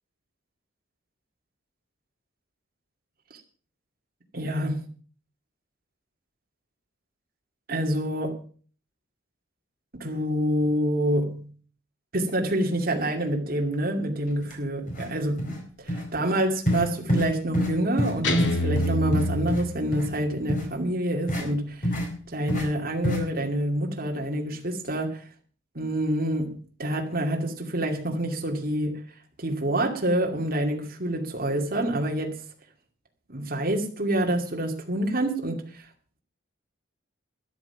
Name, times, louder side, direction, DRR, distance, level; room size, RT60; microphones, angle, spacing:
voice 1, 4.3-4.9 7.7-8.4 10.0-11.5 12.1-21.9 22.3-25.2 25.7-29.0 29.4-32.4 33.3-35.9, right 1 dB, 45° right, 2.5 m, -27 dB
sound 1, 14.4-14.5 14.9-15.1 15.4-15.6 15.9-16.0 16.7-16.8 17.1-17.3 17.5-17.7 18.0-18.1 18.4-19.6 19.9-20.1 20.5-20.6 21.3-21.4 21.8-22.1 22.5-22.6 23.0-23.2, equal, 40° left, 4.3 m, -26 dB
Guitar, 18.2-20.3, left 1 dB, 60° left, 2.3 m, -27 dB
13.0 x 11.5 x 5.9 m
head